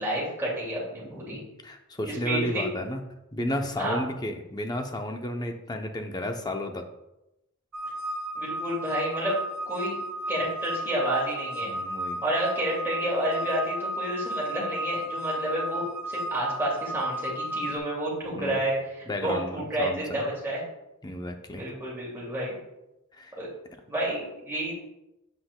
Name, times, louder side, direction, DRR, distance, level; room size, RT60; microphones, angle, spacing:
voice 1, 0.0-1.4 2.0-2.7 3.8-4.0 8.4-9.4 9.7-10.0 10.3-11.7 12.2-20.6 21.6-22.6 23.4-23.5 23.9-24.8, right 1 dB, 10° right, -6 dB, 2.3 m, -30 dB
voice 2, 1.2-3.0 3.3-6.9 11.6-12.2 18.3-18.6 19.1-20.3 21.0-21.8 23.1-23.4, left 1 dB, 20° left, 5 dB, 0.6 m, -33 dB
sound 1, 7.7-17.8, right 1 dB, 80° right, 0.6 m, -33 dB
7.9 x 6.0 x 2.2 m, 0.92 s
head